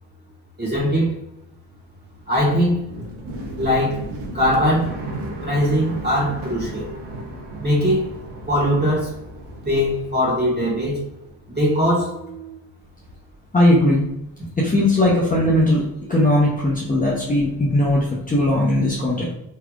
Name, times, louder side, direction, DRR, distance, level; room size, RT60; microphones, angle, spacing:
voice 1, 0.6-1.1 2.3-2.9 3.6-4.0 4.3-4.9 5.4-6.9 7.6-8.1 8.5-9.1 9.6-11.0 11.5-12.1, equal, 25° right, -6 dB, 1.5 m, -20 dB
sound 1, 1.4-11.6 11.8-12.7, right 1 dB, 85° right, 0.8 m, -35 dB
voice 2, 13.5-14.1 14.6-15.8 16.1-19.3, left 1 dB, 20° left, -5 dB, 0.9 m, -18 dB
3.2 x 3.2 x 2.4 m, 0.86 s
supercardioid pair, 50°, 43 cm